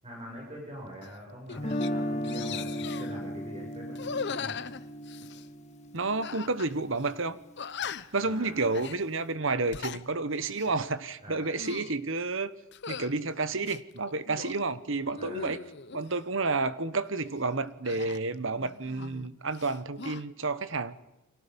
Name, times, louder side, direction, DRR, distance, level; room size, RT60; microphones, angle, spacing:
voice 1, 0.0-4.6 8.2-8.6 11.2-11.6 15.2-15.5, equal, 30° right, 6.8 m, -44 dB
sound 1, 1.0-1.2 1.5-1.9 2.2-3.1 3.9-5.5 6.2-6.7 7.0-7.1 7.6-8.2 8.7-9.0 9.5-10.0 10.5-10.7 11.4-12.0 12.7-13.1 13.6-14.6 15.1-16.0 17.8-19.3 19.5-20.2, left 6 dB, 55° left, 0.9 m, -39 dB
Guitar, 1.6-7.6, equal, 35° left, 1.5 m, -36 dB
voice 2, 5.9-7.4 8.1-12.5 12.9-15.6 15.9-21.0, right 3 dB, 65° right, 1.3 m, -30 dB
30.0 x 24.5 x 5.4 m
head